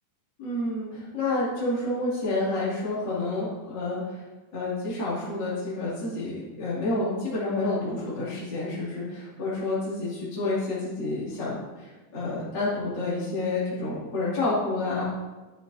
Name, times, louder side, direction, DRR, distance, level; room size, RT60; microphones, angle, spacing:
voice 1, 0.4-4.2 4.5-15.0, left 2 dB, 35° left, -9 dB, 3.1 m, -29 dB
12.0 x 8.5 x 2.8 m, 1.2 s
omnidirectional pair, 3.6 m